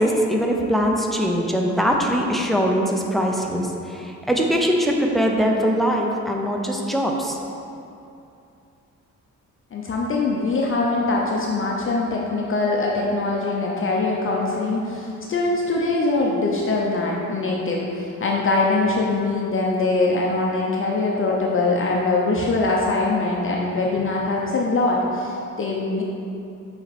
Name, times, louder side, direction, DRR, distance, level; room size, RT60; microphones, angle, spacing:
voice 1, 0.0-7.4, equal, ahead, 0 dB, 0.6 m, -22 dB
voice 2, 9.7-26.0, left 3 dB, 40° left, -2 dB, 0.7 m, -22 dB
7.0 x 4.3 x 4.1 m, 2.7 s
cardioid pair, 130°, 31 cm